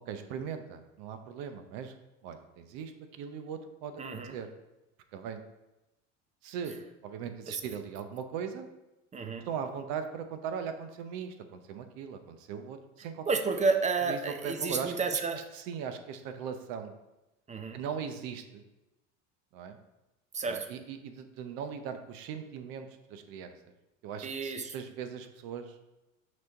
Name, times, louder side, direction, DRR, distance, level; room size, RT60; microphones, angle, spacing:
voice 1, 0.1-1.9 2.2-4.5 5.1-5.4 6.4-6.8 7.0-8.7 9.4-13.3 14.1-16.9 17.7-18.6 19.5-19.7 20.4-23.5 24.0-25.7, right 7 dB, 60° right, 8 dB, 0.8 m, -39 dB
voice 2, 4.0-4.4 7.5-7.6 9.1-9.5 13.3-15.4 17.5-17.8 20.3-20.7 24.2-24.7, right 4 dB, 20° right, 6 dB, 0.5 m, -31 dB
6.2 x 3.0 x 5.1 m, 0.98 s
hypercardioid pair, 80°, 39 cm